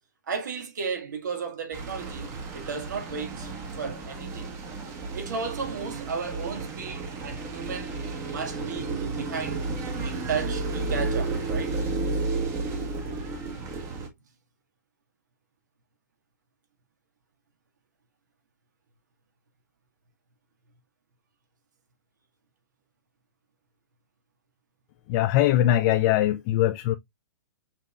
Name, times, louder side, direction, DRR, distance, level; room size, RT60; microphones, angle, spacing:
voice 1, 0.3-3.5 3.8-4.5 5.1-8.0 8.3-9.7 10.0-11.8, right 5 dB, 70° right, 1.7 m, -34 dB
sound 1, 1.7-14.1, right 3 dB, 25° right, 1.3 m, -32 dB
voice 2, 25.1-26.9, left 13 dB, 40° left, 0.4 m, -21 dB
5.7 x 3.7 x 2.3 m
hypercardioid pair, 130°, 10 cm